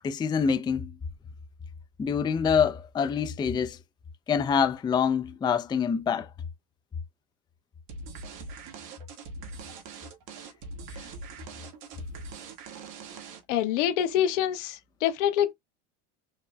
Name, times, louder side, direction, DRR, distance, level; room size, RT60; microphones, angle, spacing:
voice 1, 0.0-0.9 2.0-3.8 4.3-6.3, left 6 dB, 15° left, 0.4 m, -25 dB
sound 1, 7.9-13.6, right 3 dB, 70° right, 1.7 m, -42 dB
voice 2, 13.5-15.5, left 10 dB, 80° left, 1.2 m, -26 dB
4.6 x 3.1 x 2.2 m
supercardioid pair, 110°, 35 cm